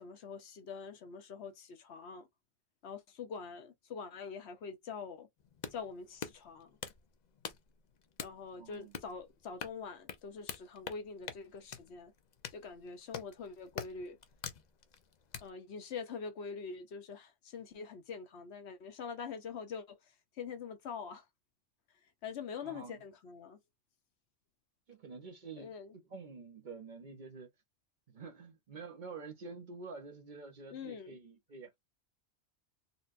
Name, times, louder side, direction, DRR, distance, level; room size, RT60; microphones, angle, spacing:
voice 1, 0.0-2.3 2.8-5.3 5.7-6.8 8.2-12.1 12.5-14.2 15.4-20.0 20.4-21.2 22.2-23.6 25.6-25.9 30.7-31.2, left 5 dB, 70° left, 1.0 m, -44 dB
sound 1, 5.4-15.5, left 7 dB, 50° left, 0.5 m, -46 dB
voice 2, 8.5-8.9 22.6-23.0 24.9-27.5 28.1-31.8, right 4 dB, 50° right, 0.8 m, -48 dB
4.1 x 2.1 x 2.5 m
omnidirectional pair, 1.2 m